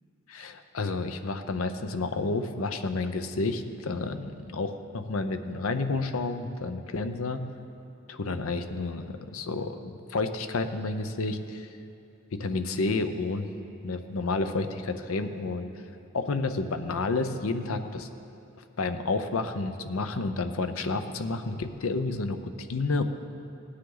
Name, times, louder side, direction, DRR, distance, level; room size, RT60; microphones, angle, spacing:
voice 1, 0.3-7.4 8.1-11.7 12.3-13.5 13.8-15.7 16.1-18.1 18.8-22.4 22.7-23.0, left 3 dB, 75° left, 9 dB, 0.7 m, -30 dB
16.5 x 9.7 x 3.9 m, 2.8 s
head